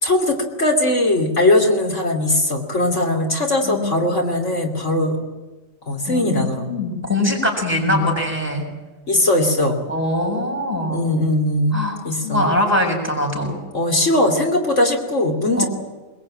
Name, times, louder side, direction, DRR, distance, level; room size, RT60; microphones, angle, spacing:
voice 1, 0.0-5.2 5.9-6.7 7.8-8.0 9.1-9.8 10.9-11.8 12.0-12.5 13.7-15.6, left 1 dB, 60° left, 3 dB, 3.1 m, -19 dB
voice 2, 6.1-8.6 9.9-11.1 11.7-12.0 12.2-13.6 15.6-15.7, left 1 dB, 10° right, -1 dB, 6.6 m, -22 dB
22.0 x 21.5 x 8.9 m, 1.1 s
omnidirectional pair, 1.4 m